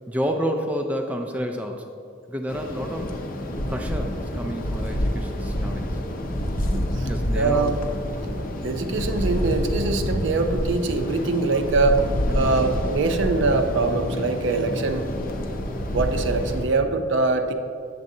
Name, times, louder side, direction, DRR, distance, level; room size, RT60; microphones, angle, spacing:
voice 1, 0.1-1.9 2.3-3.2 3.7-6.0 7.1-7.8 12.3-12.5, equal, 5° right, 3 dB, 0.3 m, -30 dB
sound 1, 2.5-16.6, equal, 45° left, 0.6 m, -27 dB
voice 2, 6.7-7.1 7.3-7.7 8.6-12.0 12.3-15.1 15.9-17.5, right 3 dB, 60° right, 6 dB, 0.5 m, -23 dB
8.2 x 7.3 x 2.7 m, 2.4 s
head